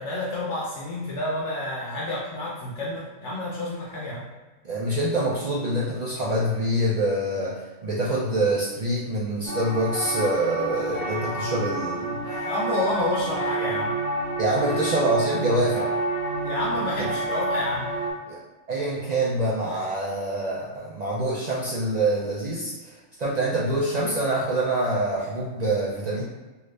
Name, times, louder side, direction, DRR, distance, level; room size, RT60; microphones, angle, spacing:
voice 1, 0.0-4.3 12.4-14.0 16.4-17.9, left 1 dB, 65° left, -5 dB, 0.9 m, -29 dB
voice 2, 4.6-12.2 14.4-15.9 17.0-17.1 18.3-18.4 18.7-26.2, right 1 dB, 70° right, -6 dB, 0.4 m, -25 dB
sound 1, 9.5-18.1, right 2 dB, 50° right, 1.1 m, -28 dB
2.7 x 2.5 x 3.2 m, 1.2 s
omnidirectional pair, 1.4 m